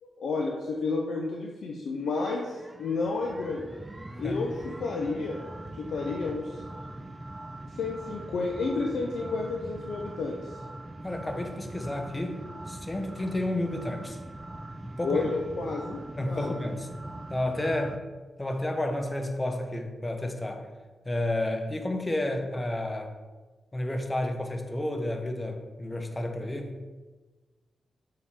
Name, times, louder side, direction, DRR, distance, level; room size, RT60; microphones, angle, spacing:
voice 1, 0.0-3.7 4.2-5.4 5.8-6.6 7.8-10.5 15.0-16.5, left 3 dB, 80° left, 0 dB, 0.6 m, -31 dB
sound 1, 2.1-18.0, right 1 dB, 15° right, 0.4 m, -42 dB
voice 2, 11.0-12.4 12.7-14.2 14.8-15.2 16.2-16.9 17.3-18.0 18.4-20.7 21.0-23.1 23.7-26.7, left 1 dB, 20° left, 5 dB, 0.9 m, -31 dB
6.4 x 4.3 x 3.6 m, 1.3 s
cardioid pair, 65°, 0 cm